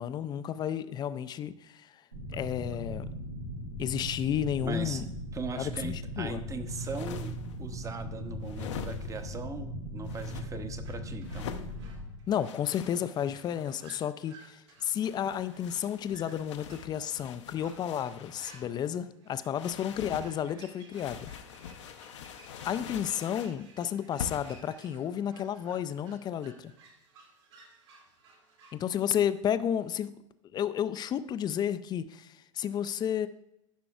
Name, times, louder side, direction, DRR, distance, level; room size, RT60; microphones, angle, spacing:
voice 1, 0.0-1.9 2.3-3.1 3.8-5.0 5.6-6.4 12.3-21.3 22.6-26.7 28.7-30.1 30.5-33.3, left 9 dB, 25° left, 13 dB, 0.4 m, -32 dB
sound 1, 2.1-12.1, equal, 85° right, 1.9 m, -39 dB
voice 2, 4.6-5.0 5.3-11.5, right 3 dB, 20° right, 9 dB, 0.9 m, -39 dB
sound 2, 6.7-7.6 8.4-9.3 10.1-10.5 11.2-11.7 12.4-13.9 14.9-18.7 19.5-20.3 20.9-23.6 24.2-24.7, left 7 dB, 65° left, 0.8 m, -44 dB
sound 3, 10.8-28.9, right 4 dB, 60° right, 2.5 m, -57 dB
14.5 x 6.0 x 2.4 m, 0.85 s
figure-of-eight pair, 85°, 17 cm